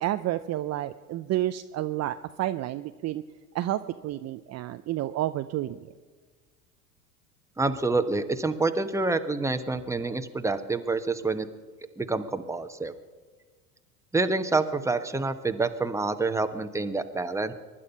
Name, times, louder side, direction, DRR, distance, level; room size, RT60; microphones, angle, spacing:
voice 1, 0.0-3.2 3.5-5.8, right 14 dB, 35° right, 9 dB, 0.6 m, -30 dB
voice 2, 7.6-11.5 12.0-12.9 14.1-17.5, right 3 dB, 5° right, 8 dB, 1.1 m, -27 dB
23.0 x 11.5 x 5.5 m, 1.5 s
hypercardioid pair, 90°, 46 cm